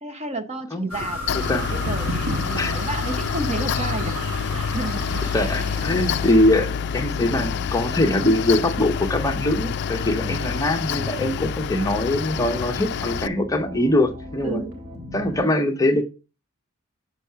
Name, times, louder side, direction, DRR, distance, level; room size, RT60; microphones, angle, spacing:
voice 1, 0.0-4.2 4.5-5.3 10.0-10.5 14.4-14.7, right 2 dB, 30° right, 0.8 m, -32 dB
sound 1, 0.8-15.4, left 1 dB, 50° right, 3.4 m, -40 dB
sound 2, 0.9-6.3, right 1 dB, 75° right, 1.9 m, -32 dB
Mechanical fan, 1.3-13.3, left 7 dB, 50° left, 0.3 m, -27 dB
voice 2, 1.3-1.7 2.6-2.8 5.3-14.6 15.1-16.0, left 1 dB, 15° left, 0.7 m, -22 dB
6.9 x 4.6 x 5.5 m
head